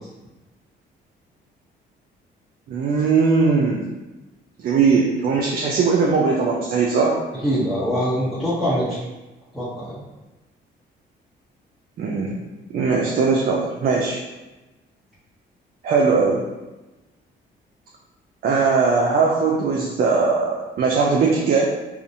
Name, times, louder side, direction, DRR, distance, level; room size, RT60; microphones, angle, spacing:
voice 1, 2.7-3.8 4.6-7.2 12.0-12.4 12.7-14.2 15.8-16.5 18.4-21.6, right 4 dB, 50° right, -2 dB, 0.4 m, -19 dB
voice 2, 7.4-9.0 9.5-10.0, equal, ahead, -12 dB, 0.9 m, -23 dB
2.4 x 2.0 x 2.7 m, 1.1 s
cardioid pair, 90°, 20 cm